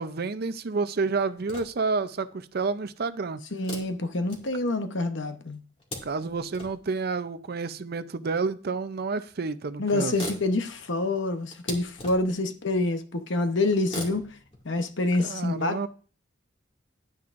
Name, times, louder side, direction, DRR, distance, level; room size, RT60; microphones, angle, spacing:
voice 1, 0.0-3.4 6.0-10.2 15.2-15.9, right 4 dB, 50° right, 0.5 m, -29 dB
sound 1, 1.3-2.0 3.6-4.9 5.5-6.9 8.1-8.2 9.3-9.4 9.6-9.7 10.0-12.5 13.8-15.3, left 1 dB, 30° left, 2.2 m, -41 dB
voice 2, 3.5-5.6 9.8-14.3 14.6-15.8, left 2 dB, 65° left, 0.9 m, -27 dB
10.5 x 9.4 x 2.5 m
head